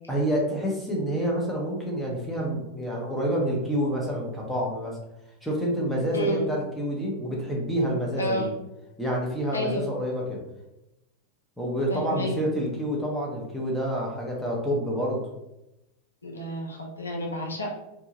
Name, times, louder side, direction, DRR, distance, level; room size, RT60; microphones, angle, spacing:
voice 1, 0.1-5.0 5.4-8.5 9.0-10.4 11.6-15.2, equal, ahead, -3 dB, 0.7 m, -28 dB
voice 2, 6.1-6.5 8.2-8.5 9.5-9.8 11.9-12.4 16.2-17.7, equal, 75° left, 0 dB, 0.5 m, -30 dB
2.7 x 2.2 x 2.8 m, 0.92 s
figure-of-eight pair, 90°, 0 cm